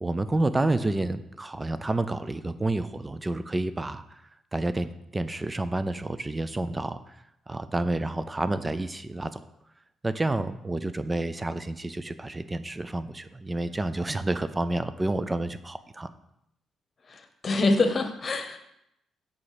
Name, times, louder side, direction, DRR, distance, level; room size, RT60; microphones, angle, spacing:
voice 1, 0.0-4.0 4.5-7.0 7.5-9.4 10.0-16.1, right 2 dB, 15° right, 12 dB, 0.5 m, -29 dB
voice 2, 17.1-18.6, left 3 dB, 35° left, 7 dB, 1.1 m, -25 dB
8.3 x 5.3 x 5.0 m, 0.81 s
cardioid pair, 120°, 0 cm